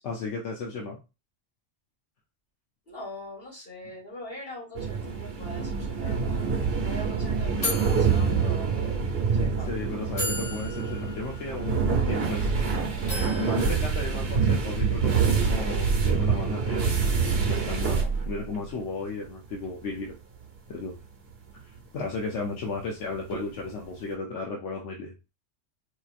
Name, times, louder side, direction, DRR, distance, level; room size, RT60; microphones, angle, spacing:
voice 1, 0.0-1.0 9.6-12.5 13.4-16.9 17.4-20.1 20.7-21.0 21.9-25.1, left 3 dB, 85° left, 0 dB, 1.1 m, -34 dB
voice 2, 2.9-8.7 9.4-9.8 17.7-17.9, left 1 dB, 55° left, -6 dB, 2.7 m, -42 dB
sound 1, 4.7-18.5 18.8-19.3 19.8-19.9 23.3-23.4, right 5 dB, 65° right, 1.0 m, -26 dB
sound 2, 7.6-9.0 9.7-9.8 10.2-12.6 13.1-14.7, left 2 dB, 30° left, 1.5 m, -36 dB
4.5 x 2.8 x 2.4 m, 0.28 s
omnidirectional pair, 1.2 m